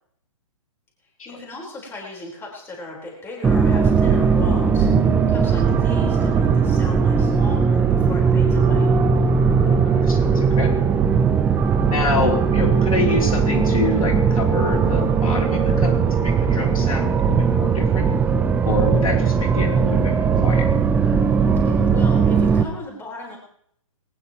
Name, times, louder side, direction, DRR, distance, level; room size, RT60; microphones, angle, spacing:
voice 1, 1.2-8.9 21.6-23.4, left 2 dB, 15° left, -1 dB, 4.2 m, -37 dB
sound 1, 3.4-22.6, right 5 dB, 10° right, 0.7 m, -18 dB
sound 2, 5.6-17.6, right 8 dB, 25° right, 4.1 m, -41 dB
voice 2, 9.6-10.7 11.8-18.1 18.6-20.7, left 3 dB, 75° left, 2 dB, 3.1 m, -27 dB
20.0 x 18.5 x 3.0 m, 0.68 s
hypercardioid pair, 135°, 18 cm